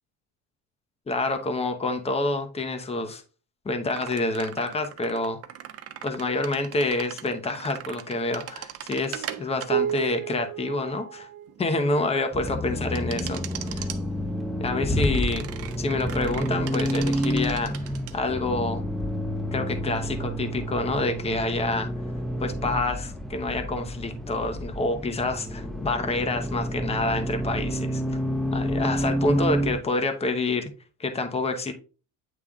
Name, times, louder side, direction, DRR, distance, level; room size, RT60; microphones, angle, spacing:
voice 1, 1.1-3.2 3.6-5.4 6.0-11.3 11.6-13.4 13.7-13.9 14.6-15.5 15.8-18.8 19.5-21.9 22.4-28.0 28.5-30.7 31.0-31.7, left 2 dB, 15° left, 0.9 m, -27 dB
sound 1, 3.9-11.7 12.9-14.0 15.0-18.1, right 10 dB, 45° right, 0.7 m, -35 dB
Accelerating revving vroom, 12.3-29.8, equal, ahead, 0.5 m, -29 dB
8.8 x 3.3 x 3.6 m
cardioid pair, 125°, 35 cm